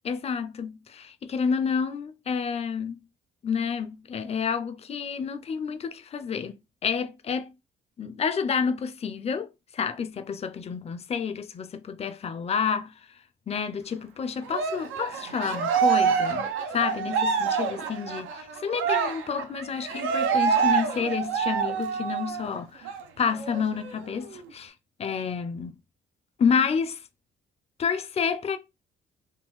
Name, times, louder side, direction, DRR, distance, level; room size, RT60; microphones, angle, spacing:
voice 1, 0.0-3.0 3.4-6.5 6.8-7.5 8.0-12.9 13.5-24.7 25.0-25.8 26.4-27.0 27.8-28.6, left 6 dB, 30° left, 0.4 m, -29 dB
Cheering, 14.5-22.5 22.8-23.0 23.4-24.4, right 6 dB, 90° right, 0.6 m, -26 dB
3.6 x 2.2 x 3.0 m
cardioid pair, 90°, 20 cm